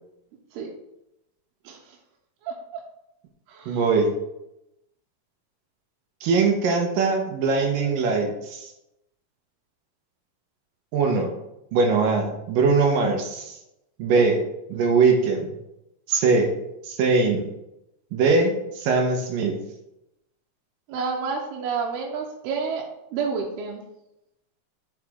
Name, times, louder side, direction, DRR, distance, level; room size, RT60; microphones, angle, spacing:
voice 1, 2.4-2.8 3.5-3.8 20.9-22.9 23.1-23.8, right 5 dB, 85° right, 0 dB, 2.8 m, -29 dB
voice 2, 3.7-4.1 6.2-8.7 10.9-11.3 11.7-13.6 14.0-14.4 14.7-15.5 16.1-16.5 16.8-17.5 18.1-19.6, right 4 dB, 70° right, 2 dB, 2.5 m, -21 dB
7.8 x 5.2 x 3.6 m, 0.85 s
omnidirectional pair, 4.5 m